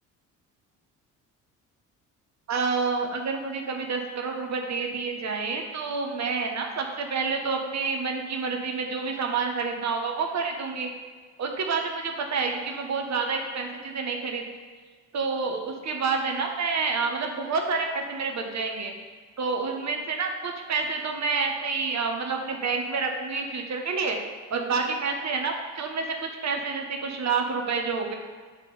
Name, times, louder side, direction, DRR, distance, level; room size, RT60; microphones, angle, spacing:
voice 1, 2.5-10.9 11.4-14.4 15.1-18.9 19.4-24.2 24.5-28.1, right 4 dB, 45° right, 3 dB, 1.3 m, -28 dB
8.9 x 3.7 x 4.2 m, 1.5 s
hypercardioid pair, 55°, 38 cm